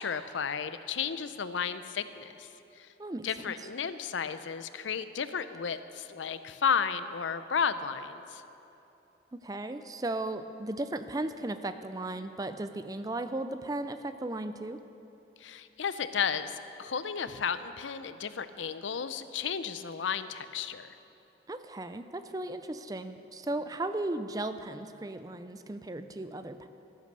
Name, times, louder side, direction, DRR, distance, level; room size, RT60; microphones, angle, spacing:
voice 1, 0.0-2.5 2.8-2.9 3.2-8.4 15.4-20.9, left 6 dB, 90° left, 12 dB, 0.6 m, -33 dB
voice 2, 3.0-3.5 9.3-14.8 21.5-26.7, right 2 dB, 20° right, 10 dB, 0.4 m, -36 dB
13.5 x 10.5 x 6.7 m, 3.0 s
head